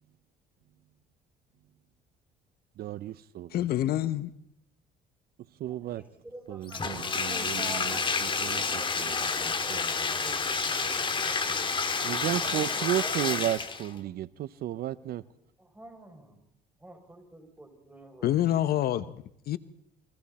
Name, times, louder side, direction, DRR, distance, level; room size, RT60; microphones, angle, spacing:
voice 1, 2.8-3.6 5.6-6.0 6.5-9.8 12.0-15.2, right 13 dB, 65° right, 0.8 m, -34 dB
voice 2, 3.5-4.3 18.2-19.6, left 12 dB, 65° left, 1.0 m, -27 dB
voice 3, 5.8-8.2 8.5-11.8 12.5-13.5 14.1-14.2 15.8-16.4 16.8-18.3, right 1 dB, 10° right, 7.0 m, -48 dB
Bathtub (filling or washing), 6.7-13.9, left 5 dB, 30° left, 2.4 m, -29 dB
29.0 x 23.0 x 4.3 m
cardioid pair, 110°, 17 cm